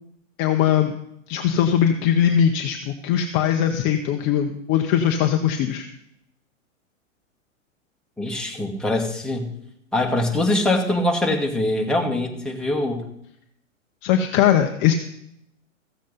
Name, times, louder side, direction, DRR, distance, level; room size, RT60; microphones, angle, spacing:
voice 1, 0.4-0.9 1.3-5.8 14.0-14.9, left 9 dB, 30° left, 6 dB, 0.7 m, -20 dB
voice 2, 8.2-9.5 9.9-13.1, left 1 dB, ahead, 0 dB, 1.5 m, -23 dB
14.5 x 7.3 x 5.5 m, 0.78 s
figure-of-eight pair, 110°, 39 cm